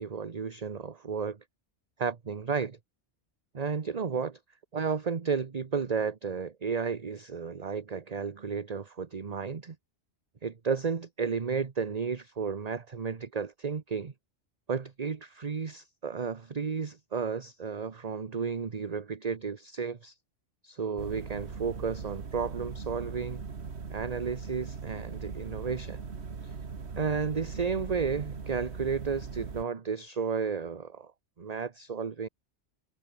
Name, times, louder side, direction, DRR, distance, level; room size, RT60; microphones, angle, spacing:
voice 1, 0.0-1.4 2.0-2.8 3.5-4.4 4.7-9.8 10.4-14.1 14.7-20.2 20.6-23.4 23.9-26.0 26.4-26.5 27.0-31.1 31.4-32.3, right 5 dB, 35° right, 1.0 m, -33 dB
sound 1, 21.0-29.6, right 5 dB, 65° right, 2.0 m, -40 dB
omnidirectional pair, 1.2 m